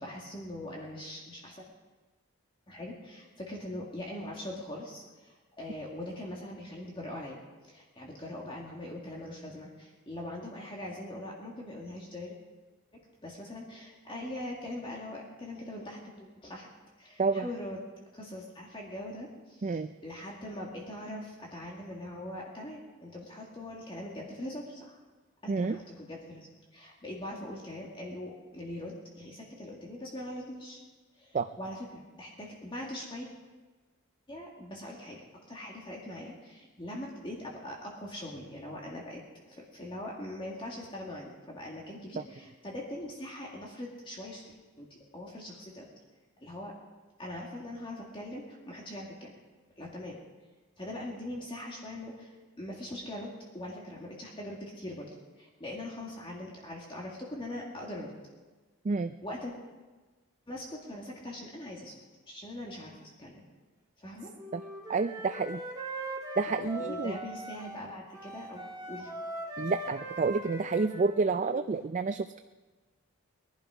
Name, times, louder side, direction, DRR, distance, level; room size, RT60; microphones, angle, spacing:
voice 1, 0.0-1.6 2.7-12.4 13.2-16.7 17.0-17.8 18.1-25.0 25.4-30.8 31.2-33.3 34.3-44.9 45.1-45.9 46.4-46.7 47.2-49.3 49.8-50.2 50.8-55.1 55.4-58.1 59.2-59.5 60.5-61.9 62.3-63.5 64.0-64.3 66.5-69.1, left 1 dB, 25° left, -2 dB, 2.0 m, -42 dB
Wind instrument woodwind instrument, 64.4-67.9 68.1-71.7, equal, 15° right, 1.9 m, -40 dB
voice 2, 64.9-65.6 66.4-67.2 69.6-72.4, right 4 dB, 35° right, 9 dB, 0.4 m, -29 dB
21.5 x 11.5 x 5.0 m, 1.3 s
head